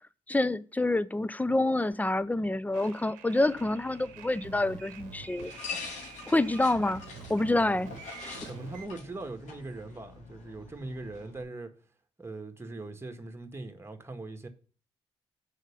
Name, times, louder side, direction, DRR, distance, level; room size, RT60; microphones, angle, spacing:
voice 1, 0.3-5.5 6.3-7.0 7.3-7.9 8.2-8.5, left 2 dB, 10° left, 0.6 m, -27 dB
sound 1, 2.7-8.9, right 7 dB, 75° right, 0.9 m, -48 dB
sound 2, 3.4-11.4, left 4 dB, 70° left, 2.6 m, -45 dB
voice 2, 8.4-11.7 12.2-14.5, right 2 dB, 20° right, 1.8 m, -41 dB
6.5 x 5.1 x 6.8 m
hypercardioid pair, 40°, 13 cm